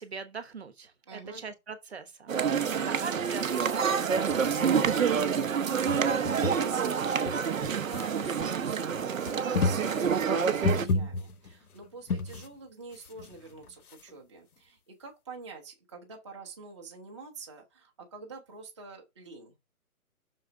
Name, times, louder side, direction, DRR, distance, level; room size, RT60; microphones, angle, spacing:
voice 1, 0.0-5.7, right 5 dB, 45° right, 1.1 m, -42 dB
voice 2, 1.1-1.4 2.5-2.9 6.1-19.5, right 3 dB, 20° right, 0.9 m, -47 dB
sound 1, 2.3-10.9, right 6 dB, 60° right, 0.9 m, -27 dB
sound 2, 4.3-5.5 5.8-6.6 7.2-8.5 9.0-12.5 12.9-14.1, left 3 dB, 80° left, 1.0 m, -33 dB
6.4 x 3.9 x 5.6 m
hypercardioid pair, 170°, 44 cm